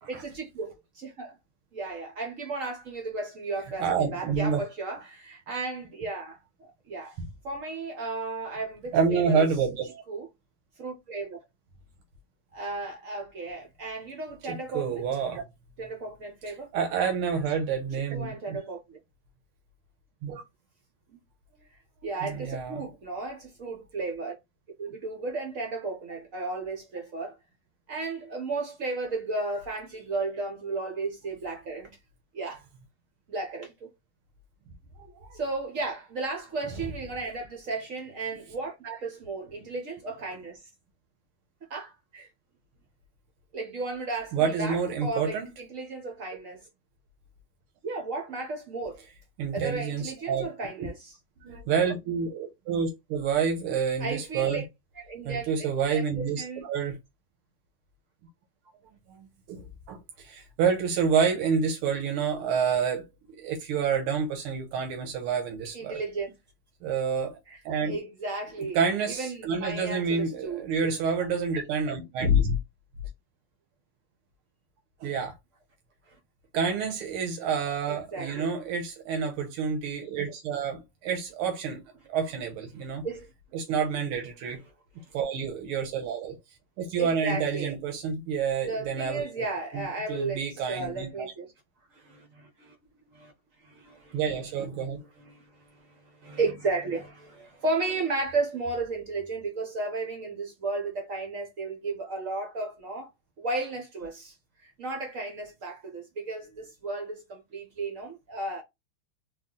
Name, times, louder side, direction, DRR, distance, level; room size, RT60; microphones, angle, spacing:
voice 1, 0.1-1.4 1.7-9.4 10.1-10.3 10.8-11.4 12.5-15.0 15.8-16.7 18.1-19.0 22.0-24.3 24.8-27.4 27.9-31.9 32.3-32.6 33.3-33.9 35.3-40.7 41.7-42.3 43.5-46.7 47.8-49.0 49.5-51.2 54.0-54.7 55.0-56.6 65.7-66.4 67.5-68.8 69.1-70.6 76.1-76.2 77.9-78.5 83.0-83.3 87.0-87.7 88.6-91.5 91.9-93.3 93.6-103.1 103.4-108.6, right 3 dB, 65° right, 0.8 m, -34 dB
voice 2, 3.8-4.6 8.9-10.0 14.4-15.4 16.7-18.6 20.2-20.4 22.2-22.8 35.1-35.4 44.3-45.5 49.4-50.5 50.8-50.9 51.4-54.6 55.2-57.0 59.1-63.0 63.4-66.0 66.8-67.4 67.6-68.0 68.7-72.6 75.0-75.3 76.5-81.8 82.1-83.0 83.5-84.6 85.1-86.4 86.8-89.4 89.7-91.3 94.1-95.0, right 5 dB, 90° right, 1.7 m, -28 dB
4.1 x 2.3 x 3.7 m
omnidirectional pair, 2.3 m